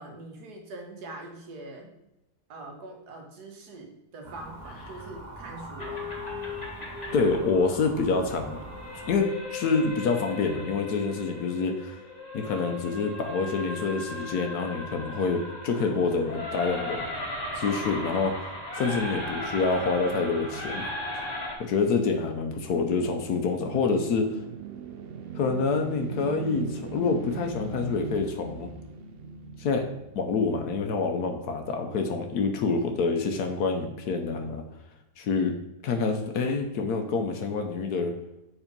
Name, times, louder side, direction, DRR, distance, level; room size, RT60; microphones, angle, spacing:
voice 1, 0.0-2.0 2.5-6.2, right 2 dB, 90° right, 2 dB, 1.8 m, -43 dB
sound 1, 4.2-9.2, right 2 dB, 30° right, 1.0 m, -43 dB
sound 2, 5.8-21.5, left 1 dB, 25° left, 1.6 m, -37 dB
voice 2, 7.1-8.6 9.1-12.0 12.3-17.0 17.6-18.4 18.7-20.8 21.6-24.3 25.3-28.7 29.6-29.8 30.1-34.6 35.2-35.5 35.8-38.1, left 4 dB, 80° left, 4 dB, 1.3 m, -27 dB
sound 3, 22.0-31.2, right 4 dB, 60° right, 0.6 m, -39 dB
7.3 x 4.3 x 5.2 m, 0.91 s
omnidirectional pair, 1.6 m